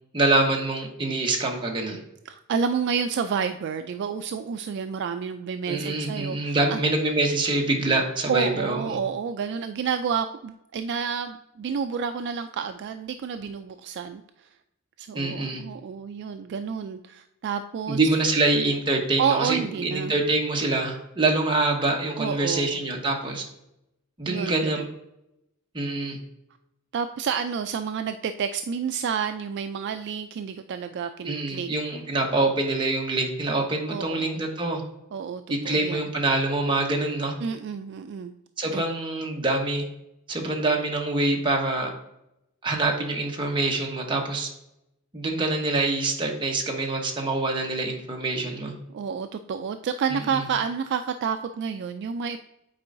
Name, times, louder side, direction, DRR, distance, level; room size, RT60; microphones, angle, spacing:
voice 1, 0.1-2.0 5.7-9.0 15.1-15.6 17.9-23.4 24.2-24.8 25.7-26.2 31.2-34.8 35.5-37.3 38.6-39.8 40.3-41.9 42.6-44.5 45.1-48.7 50.3-50.4, right 2 dB, 20° right, 0 dB, 1.1 m, -25 dB
voice 2, 2.3-6.8 8.3-14.5 15.0-18.0 19.2-20.1 22.2-22.8 24.3-24.9 26.9-31.7 33.9-34.4 35.1-36.1 37.4-38.3 38.7-38.8 48.9-52.4, right 6 dB, 55° right, 9 dB, 0.3 m, -29 dB
8.6 x 4.5 x 2.6 m, 0.85 s
head